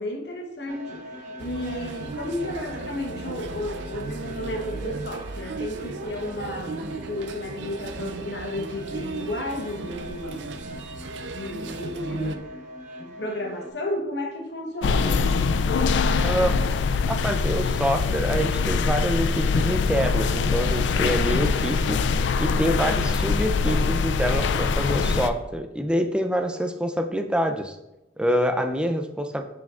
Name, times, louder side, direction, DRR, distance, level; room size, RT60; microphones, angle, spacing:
voice 1, 0.0-11.0 11.3-12.5 13.0-15.3 22.8-23.1, left 1 dB, 70° left, 2 dB, 1.1 m, -33 dB
sound 1, 0.7-13.7, equal, 45° right, 1.0 m, -42 dB
sound 2, 1.4-12.4, right 3 dB, 85° right, 0.5 m, -36 dB
sound 3, 14.8-25.3, left 4 dB, 85° left, 0.4 m, -23 dB
voice 2, 16.2-16.6 17.1-22.0 22.4-27.8 28.2-29.4, equal, 5° right, 6 dB, 0.4 m, -26 dB
7.1 x 5.7 x 2.4 m, 0.95 s
head